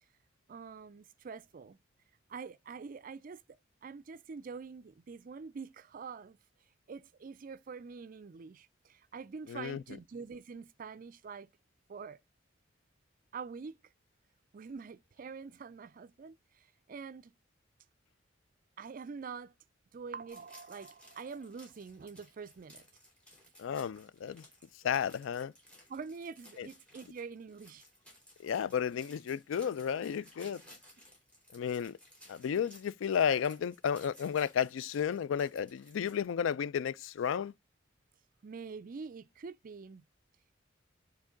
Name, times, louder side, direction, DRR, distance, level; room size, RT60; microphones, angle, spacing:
voice 1, 0.5-1.8 2.3-3.4 3.8-6.4 6.9-11.5 11.9-12.2 13.3-13.8 14.5-16.4 16.9-17.3 18.8-19.5 19.9-22.9 25.9-27.8 38.4-40.0, right 5 dB, 45° right, 0.4 m, -45 dB
voice 2, 9.5-9.8 23.6-24.4 24.8-25.5 26.6-26.7 28.4-30.6 31.5-32.0 32.3-37.5, left 8 dB, 80° left, 0.3 m, -32 dB
sound 1, 20.3-36.2, equal, 5° left, 3.3 m, -59 dB
9.6 x 3.6 x 3.7 m
head